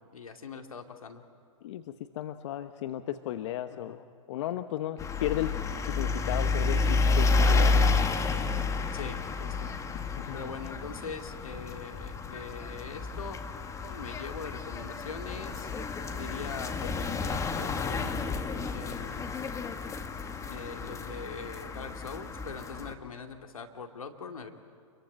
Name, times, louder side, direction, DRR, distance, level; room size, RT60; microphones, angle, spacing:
voice 1, 0.1-1.2 3.7-4.0 8.9-9.7 10.3-13.4 13.8-15.7 16.1-19.4 20.5-24.5, left 5 dB, 85° left, 5 dB, 2.5 m, -42 dB
voice 2, 1.6-5.5 5.8-7.9 10.2-10.4, left 12 dB, 60° left, 10 dB, 1.0 m, -35 dB
sound 1, 5.0-22.9, left 4 dB, 15° left, 1.8 m, -30 dB
28.5 x 22.5 x 9.2 m, 2.3 s
hypercardioid pair, 105°, 17 cm